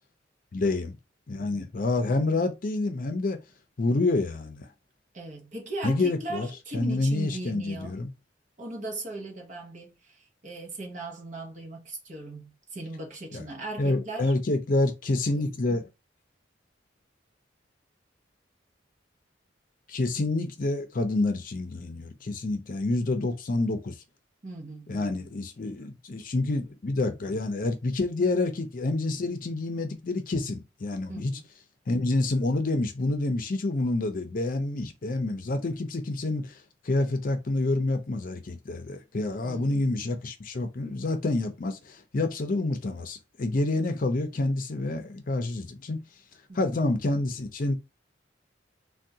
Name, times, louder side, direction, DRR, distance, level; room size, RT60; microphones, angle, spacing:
voice 1, 0.5-1.0 1.3-3.4 3.8-4.7 5.8-6.5 6.7-8.1 13.3-13.4 13.8-15.9 19.9-23.9 24.9-31.4 31.9-36.5 36.8-46.0 46.5-47.8, left 2 dB, 50° left, 0.6 m, -28 dB
voice 2, 2.1-2.5 5.1-8.0 8.6-14.3 24.4-25.7 31.1-31.4 39.4-39.9 46.5-47.0, right 2 dB, 45° right, 0.9 m, -39 dB
3.5 x 2.3 x 2.7 m
head